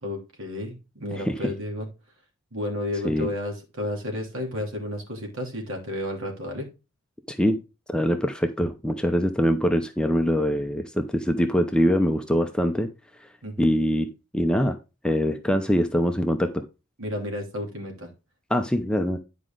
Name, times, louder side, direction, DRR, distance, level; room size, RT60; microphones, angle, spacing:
voice 1, 0.0-1.9 2.5-6.7 13.4-13.7 17.0-18.1, left 1 dB, 60° right, 2 dB, 3.0 m, -32 dB
voice 2, 7.3-7.6 7.9-12.9 13.6-14.1 14.3-14.8 15.0-16.6 18.5-19.2, equal, 5° left, 5 dB, 0.6 m, -23 dB
9.7 x 5.0 x 3.8 m, 0.28 s
head